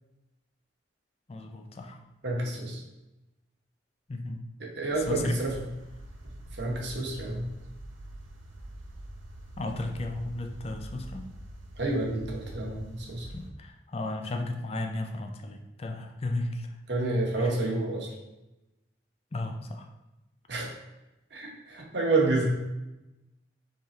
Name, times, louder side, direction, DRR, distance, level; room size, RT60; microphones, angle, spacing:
voice 1, 1.3-2.0 4.1-4.4 5.0-5.4 9.6-11.2 13.3-16.7 17.4-17.6 19.3-19.9, left 2 dB, 30° left, 4 dB, 0.4 m, -34 dB
voice 2, 2.2-2.8 4.6-5.5 6.5-7.4 11.8-13.3 16.9-18.1 20.5-20.7 21.3-22.4, right 2 dB, 60° right, -2 dB, 1.1 m, -29 dB
sound 1, 4.9-13.5, right 1 dB, 85° right, 0.8 m, -45 dB
3.8 x 3.3 x 4.1 m, 0.98 s
head